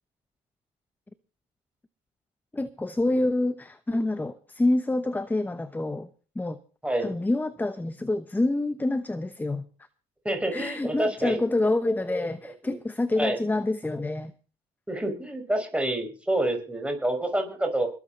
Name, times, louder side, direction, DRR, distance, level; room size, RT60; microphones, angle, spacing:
voice 1, 2.5-6.1 6.4-6.6 7.0-9.6 10.5-14.3, left 2 dB, 10° left, 1.0 m, -27 dB
voice 2, 6.8-7.2 10.2-11.4 12.6-12.8 13.2-13.4 14.9-17.9, right 1 dB, 5° right, 5.1 m, -28 dB
21.0 x 8.7 x 5.5 m
cardioid pair, 110°, 17 cm